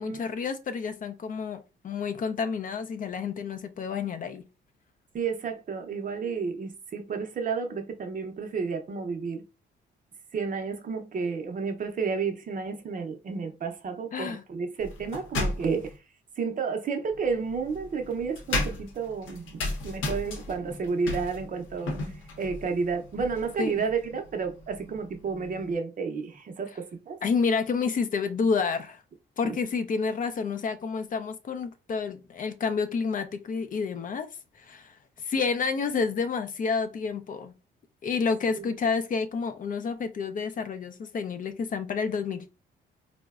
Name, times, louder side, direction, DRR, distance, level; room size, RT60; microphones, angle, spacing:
voice 1, 0.0-4.5 14.1-14.4 23.6-23.8 27.2-29.0 29.4-34.3 34.5-37.5 38.0-42.5, left 5 dB, 45° left, 0.4 m, -29 dB
voice 2, 5.1-9.4 10.3-15.9 16.4-22.0 22.4-27.2 29.4-29.6 38.5-38.7, right 5 dB, 45° right, 0.6 m, -31 dB
sound 1, 14.8-16.0 17.1-25.8, left 2 dB, 80° left, 0.8 m, -35 dB
3.8 x 2.0 x 2.3 m
cardioid pair, 90°, 20 cm